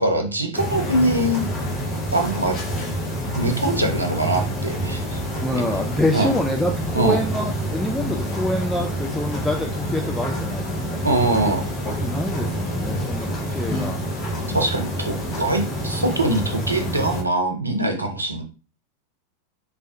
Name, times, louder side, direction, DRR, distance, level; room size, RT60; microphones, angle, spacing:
voice 1, 0.0-1.4 2.1-2.6 3.4-5.2 5.5-5.6 6.1-6.3 6.9-7.2 11.0-11.6 14.5-18.4, right 1 dB, 85° right, 4 dB, 0.6 m, -22 dB
sound 1, 0.5-17.2, equal, 30° left, 0.7 m, -27 dB
voice 2, 5.4-11.0 12.0-14.0, left 1 dB, 5° left, 1 dB, 0.3 m, -26 dB
3.3 x 2.1 x 2.7 m, 0.35 s
figure-of-eight pair, 90°, 0 cm